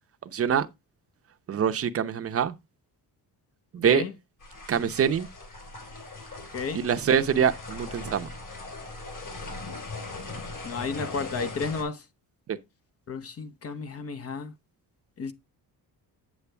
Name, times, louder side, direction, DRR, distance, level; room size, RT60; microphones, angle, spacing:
voice 1, 0.3-0.7 1.5-2.5 3.7-4.0 4.7-5.3 6.7-8.3 12.5-12.6, right 8 dB, 35° right, 0.8 m, -24 dB
sound 1, 4.4-11.8, left 3 dB, 50° left, 4.1 m, -39 dB
voice 2, 10.6-12.0 13.1-14.5 15.2-15.3, left 5 dB, 35° left, 0.9 m, -32 dB
8.4 x 7.9 x 3.4 m
cardioid pair, 145°, 39 cm